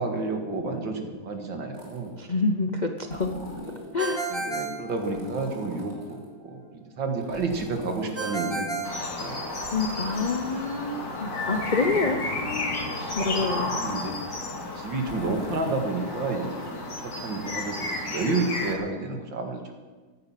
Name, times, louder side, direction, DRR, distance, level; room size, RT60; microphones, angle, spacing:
voice 1, 0.0-2.1 4.3-9.7 13.4-14.1 14.7-19.7, right 3 dB, 85° right, 3 dB, 2.6 m, -31 dB
sound 1, 1.7-2.1 3.0-3.9 4.9-6.3 7.2-8.6 9.4-10.7 11.4-12.4 13.1-14.2 15.0-15.9 16.6-16.7, equal, 45° right, 4.4 m, -41 dB
voice 2, 2.2-3.3 3.9-4.3 9.7-12.2 13.2-13.7, left 3 dB, 50° left, 4 dB, 0.5 m, -27 dB
Ringtone, 4.0-5.7 8.2-9.8, right 3 dB, 15° right, 1.2 m, -33 dB
sound 2, 8.8-18.7, left 2 dB, 75° left, 3.0 m, -32 dB
15.0 x 12.0 x 5.9 m, 1.3 s
omnidirectional pair, 2.0 m